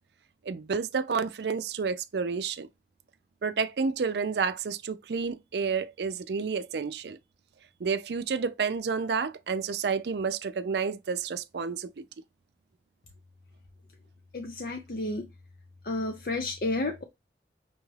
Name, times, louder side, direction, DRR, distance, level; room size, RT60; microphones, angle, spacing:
voice 1, 0.5-2.7 3.4-7.2 7.8-12.0, right 5 dB, 75° right, 0.4 m, -30 dB
voice 2, 14.3-15.3 15.8-17.0, left 2 dB, 55° left, 0.5 m, -31 dB
6.1 x 2.4 x 3.2 m
head